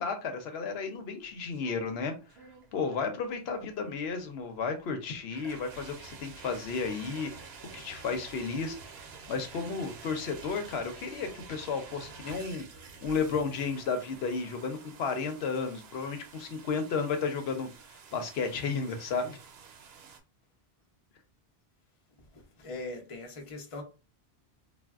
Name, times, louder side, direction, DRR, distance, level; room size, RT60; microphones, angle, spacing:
voice 1, 0.0-2.1 2.7-8.8 9.3-12.6 13.0-17.7 18.1-19.4, left 5 dB, 80° left, 0.8 m, -33 dB
sound 1, 1.2-20.2, right 5 dB, 80° right, 0.8 m, -49 dB
voice 2, 22.2-23.8, left 2 dB, 35° left, 0.7 m, -41 dB
3.3 x 2.2 x 2.3 m
omnidirectional pair, 1.1 m